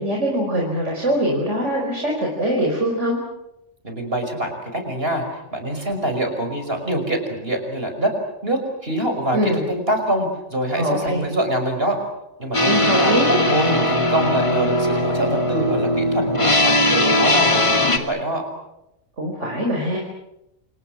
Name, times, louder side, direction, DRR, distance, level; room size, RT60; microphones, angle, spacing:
voice 1, 0.0-3.2 9.3-9.6 10.8-11.2 12.6-13.4 19.2-20.0, equal, 85° right, 0 dB, 5.3 m, -22 dB
voice 2, 3.8-5.2 5.5-8.1 8.4-12.0 12.4-13.2 13.5-18.4, right 1 dB, 55° right, 4 dB, 6.1 m, -24 dB
sound 1, 12.5-18.0, left 1 dB, 25° left, 2.5 m, -19 dB
28.5 x 28.5 x 6.2 m, 0.88 s
omnidirectional pair, 1.2 m